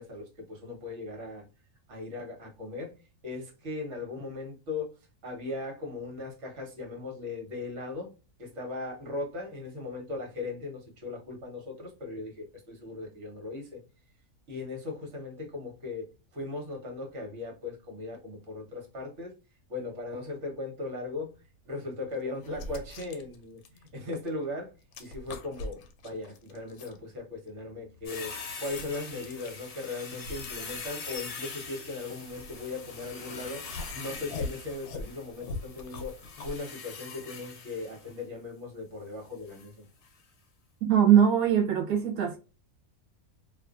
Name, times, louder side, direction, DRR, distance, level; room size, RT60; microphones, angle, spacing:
voice 1, 0.0-1.4 1.9-3.0 3.2-5.0 5.2-8.1 8.4-13.8 14.5-19.3 19.7-21.3 21.6-24.7 25.0-28.3 28.6-33.6 33.9-39.8, left 3 dB, 55° right, 1.3 m, -38 dB
sound 1, 21.4-21.5 22.1-24.5 24.7-27.0 27.5-33.1 33.7-36.6, left 2 dB, 85° left, 1.0 m, -42 dB
sound 2, 28.0-38.2 39.5-39.7 40.0-40.1, left 5 dB, 60° left, 1.0 m, -43 dB
voice 2, 40.8-42.4, right 9 dB, 85° right, 1.1 m, -21 dB
2.5 x 2.4 x 2.3 m
omnidirectional pair, 1.5 m